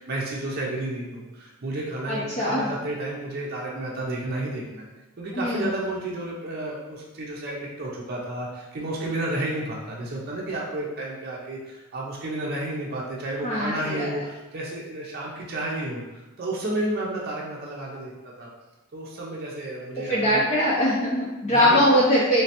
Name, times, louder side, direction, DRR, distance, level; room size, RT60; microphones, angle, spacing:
voice 1, 0.0-4.9 5.2-16.0 16.4-18.5 18.9-20.4 21.1-21.2 21.4-21.8, right 1 dB, 45° right, -4 dB, 0.5 m, -31 dB
voice 2, 2.1-2.7 5.3-5.7 13.4-14.1 20.1-22.4, equal, 35° left, -7 dB, 0.5 m, -22 dB
3.1 x 3.1 x 2.9 m, 1.1 s
head